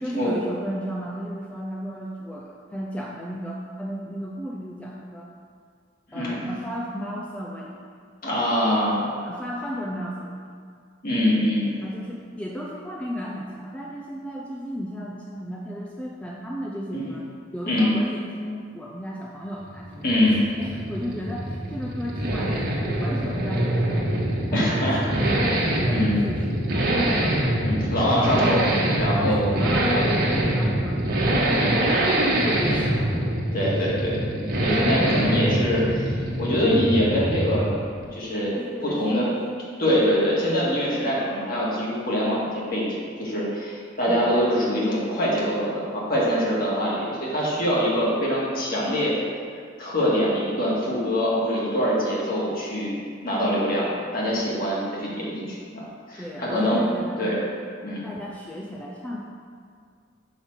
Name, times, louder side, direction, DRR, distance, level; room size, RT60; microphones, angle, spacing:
voice 1, 0.0-5.3 6.1-7.8 9.2-10.5 11.8-20.1 20.6-24.2 24.5-25.3 25.8-27.4 29.2-33.2 35.0-35.2 38.6-39.4 40.0-40.1 44.1-44.3 56.2-57.3 58.0-59.2, equal, 5° left, -3 dB, 0.5 m, -34 dB
voice 2, 6.1-6.4 8.2-9.0 11.0-11.7 16.9-17.1 17.7-17.9 20.0-20.4 24.5-25.0 25.9-26.2 27.6-28.6 29.0-29.6 29.9-30.1 31.6-31.7 33.5-36.1 36.4-37.7 38.1-38.6 38.8-39.3 39.8-49.2 49.8-52.9 53.2-55.8 56.1-57.4 57.8-58.0, equal, 50° left, -6 dB, 2.0 m, -24 dB
Accelerating revving vroom, 19.6-37.8 38.0-38.1, right 1 dB, 50° right, 1.3 m, -24 dB
5.6 x 5.3 x 6.2 m, 2.1 s
head